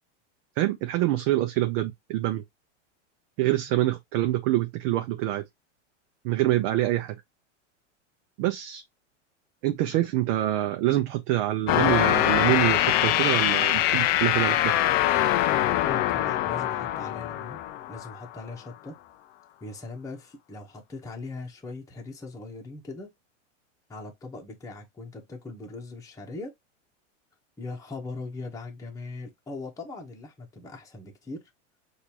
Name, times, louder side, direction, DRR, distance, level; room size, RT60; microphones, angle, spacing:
voice 1, 0.6-2.4 3.4-5.4 6.2-7.2 8.4-8.8 9.6-14.8, right 15 dB, 50° right, 0.8 m, -26 dB
sound 1, 11.7-18.3, left 13 dB, 30° left, 0.4 m, -23 dB
voice 2, 15.8-17.6 17.9-18.9 19.6-23.1 23.9-26.5 27.6-31.4, left 3 dB, 10° left, 1.1 m, -40 dB
6.5 x 2.7 x 2.9 m
supercardioid pair, 140°, 37 cm